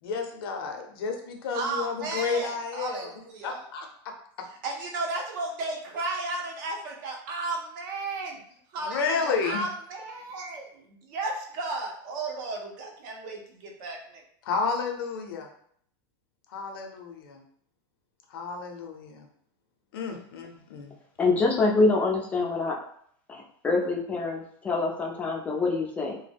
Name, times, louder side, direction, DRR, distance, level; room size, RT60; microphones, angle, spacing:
voice 1, 0.0-3.1 3.4-4.1 8.8-9.6 14.4-15.5 16.5-17.4 18.3-19.3 19.9-20.9, left 5 dB, 85° left, 3 dB, 0.6 m, -31 dB
voice 2, 1.5-3.6 4.6-8.4 8.7-14.2, right 3 dB, 60° right, 0 dB, 0.6 m, -34 dB
voice 3, 21.2-22.8 23.3-26.2, left 3 dB, 10° left, 0 dB, 0.3 m, -25 dB
2.2 x 2.0 x 3.3 m, 0.64 s
supercardioid pair, 160°, 12 cm